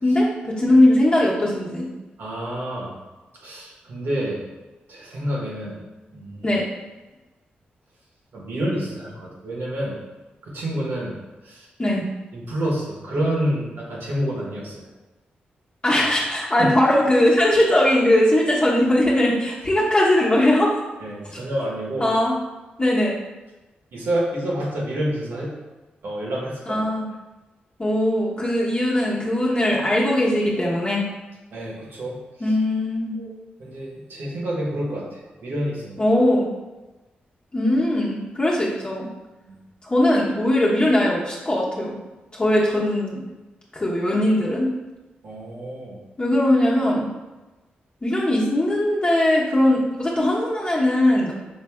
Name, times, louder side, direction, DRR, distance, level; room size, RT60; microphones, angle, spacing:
voice 1, 0.0-1.9 6.4-6.6 11.8-12.0 15.8-20.7 22.0-22.4 22.8-23.2 26.7-27.1 27.8-31.0 32.4-33.2 36.0-36.5 37.5-39.1 39.8-42.0 42.3-43.2 43.7-44.7 46.2-47.1 48.0-51.3, left 1 dB, 30° left, -5 dB, 1.0 m, -20 dB
voice 2, 2.2-2.9 3.4-4.4 4.9-5.8 6.1-6.5 8.3-9.9 10.4-11.2 11.4-11.7 12.3-14.8 16.6-16.7 21.0-22.1 23.9-25.6 26.0-26.8 31.5-32.2 33.2-33.3 33.6-36.0 39.5-39.6 45.2-46.0, right 1 dB, 75° right, -4 dB, 1.3 m, -28 dB
5.3 x 3.2 x 2.3 m, 1.1 s
cardioid pair, 55°, 4 cm